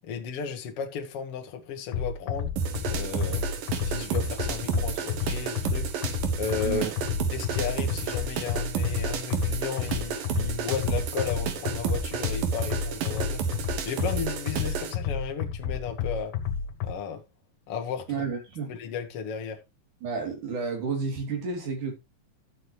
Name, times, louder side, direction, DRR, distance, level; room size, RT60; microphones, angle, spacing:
voice 1, 0.0-2.5 2.9-3.4 3.8-5.9 6.4-6.8 7.3-13.4 13.8-16.3 16.8-17.2 17.7-18.3 18.7-19.6, left 6 dB, 50° left, 2.3 m, -34 dB
sound 1, 1.9-16.9, left 7 dB, 85° left, 3.0 m, -31 dB
sound 2, 2.6-15.0, right 6 dB, 90° right, 3.3 m, -31 dB
voice 2, 18.1-18.7 20.0-21.9, right 5 dB, 65° right, 4.4 m, -31 dB
13.0 x 7.7 x 3.2 m
omnidirectional pair, 3.8 m